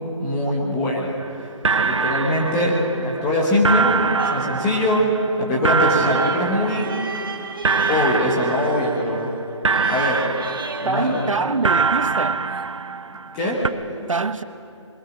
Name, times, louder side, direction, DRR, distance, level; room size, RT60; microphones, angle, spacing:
voice 1, 0.2-1.2 1.8-4.0 4.2-5.0 5.4-7.0 7.9-9.3 9.9-10.2 10.8-11.6 13.3-13.6 14.0-14.1, left 1 dB, 5° left, 0.9 m, -22 dB
sound 1, 1.2-1.3 1.6-3.3 3.6-7.4 7.6-9.3 9.6-11.3 11.6-13.4 13.6-13.7, right 5 dB, 65° right, 0.7 m, -24 dB
sound 2, 4.2-12.0 12.5-12.6, right 3 dB, 45° right, 1.4 m, -36 dB
voice 2, 10.8-12.4 14.1-14.4, right 4 dB, 85° right, 1.1 m, -24 dB
23.5 x 22.0 x 6.0 m
hypercardioid pair, 175°, 16 cm